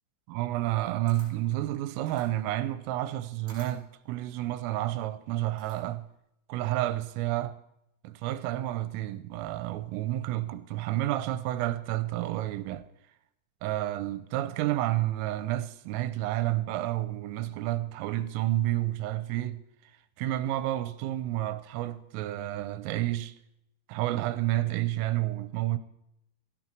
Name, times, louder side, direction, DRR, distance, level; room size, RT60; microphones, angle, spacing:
voice 1, 0.3-6.1 6.5-7.6 8.0-12.8 13.6-19.6 20.2-23.3 23.9-25.8, right 15 dB, 85° right, 3.4 m, -30 dB
Camera, 1.1-6.1, right 3 dB, 30° right, 4.7 m, -55 dB
16.0 x 16.0 x 4.6 m
omnidirectional pair, 5.9 m